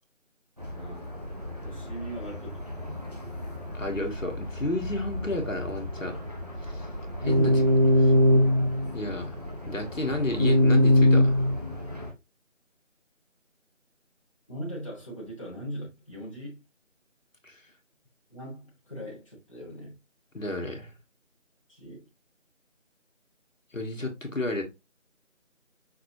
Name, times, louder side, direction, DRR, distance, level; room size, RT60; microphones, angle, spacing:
sound 1, 0.6-12.1, left 1 dB, 30° right, 0.7 m, -25 dB
voice 1, 0.7-1.0 1.6-3.0 14.5-16.6 18.3-20.0 21.7-22.1, right 1 dB, 25° left, 1.3 m, -40 dB
voice 2, 3.7-6.2 6.6-6.9 7.2-7.6 7.9-8.1 8.9-9.4 9.7-11.4 17.4-17.6 20.3-20.9 23.7-24.6, left 1 dB, 80° left, 1.4 m, -32 dB
5.8 x 3.1 x 2.7 m
figure-of-eight pair, 170°, 38 cm